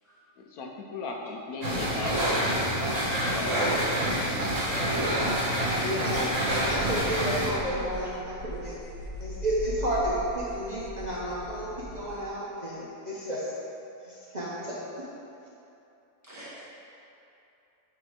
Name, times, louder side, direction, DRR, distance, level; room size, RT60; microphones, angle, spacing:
voice 1, 0.4-2.3 3.2-3.8 4.3-5.3 5.9-6.2, left 3 dB, 80° left, 1 dB, 1.1 m, -38 dB
sound 1, 1.6-7.5, equal, 60° right, 1.5 m, -27 dB
voice 2, 5.8-6.3 6.7-8.8 9.2-13.5 14.1-14.8, right 1 dB, 35° right, -9 dB, 0.8 m, -32 dB
sound 2, 6.3-12.3, equal, 50° left, 0.6 m, -40 dB
voice 3, 16.2-16.6, right 1 dB, 10° right, -10 dB, 1.4 m, -46 dB
7.3 x 3.4 x 4.9 m, 2.8 s
omnidirectional pair, 1.6 m